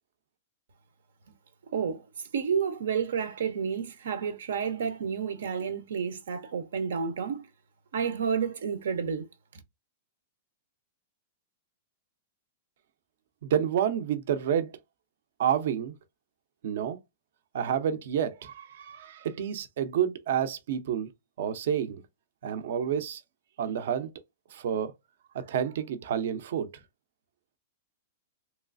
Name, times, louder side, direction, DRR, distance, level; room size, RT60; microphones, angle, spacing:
voice 1, 1.7-2.1 2.3-7.5 7.9-9.3, right 6 dB, 85° right, 0.8 m, -30 dB
voice 2, 13.4-14.8 15.4-15.9 16.6-17.0 17.5-21.1 21.4-22.0 22.4-23.2 23.6-24.1 24.5-24.9 25.3-26.8, right 9 dB, 55° right, 0.6 m, -29 dB
3.1 x 3.1 x 2.5 m
supercardioid pair, 180°, 0 cm